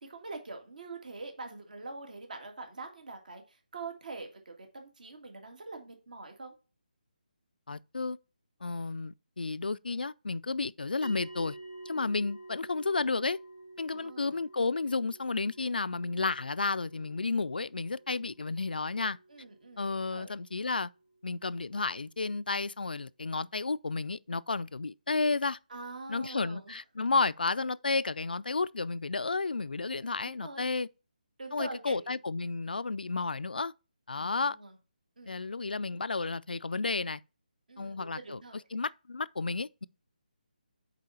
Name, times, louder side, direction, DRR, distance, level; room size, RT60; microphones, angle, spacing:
voice 1, 0.0-6.6 13.9-14.4 18.1-18.2 19.3-20.3 25.7-26.7 29.9-30.7 31.4-32.2 34.1-34.7 35.2-35.3 37.7-38.6, right 3 dB, 60° right, 2.1 m, -44 dB
voice 2, 7.7-8.2 8.6-11.6 11.9-13.4 13.8-19.2 19.8-20.9 21.2-25.6 26.1-30.9 31.5-33.7 34.1-34.6 35.3-37.2 37.8-38.4 38.7-39.9, left 3 dB, 75° left, 0.4 m, -32 dB
sound 1, 11.0-21.6, right 2 dB, 10° right, 1.1 m, -51 dB
6.7 x 4.7 x 4.2 m
figure-of-eight pair, 150°, 5 cm